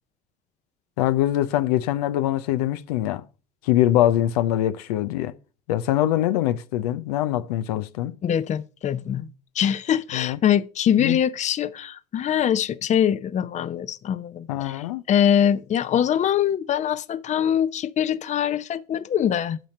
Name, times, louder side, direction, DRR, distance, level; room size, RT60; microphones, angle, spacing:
voice 1, 1.0-3.2 3.6-5.3 5.7-8.1 10.1-10.4 11.0-11.2 14.5-15.0, left 13 dB, 85° left, 0.6 m, -23 dB
voice 2, 8.2-9.3 9.6-19.6, left 9 dB, 40° left, 0.7 m, -23 dB
9.1 x 4.3 x 6.4 m
supercardioid pair, 90°, 19 cm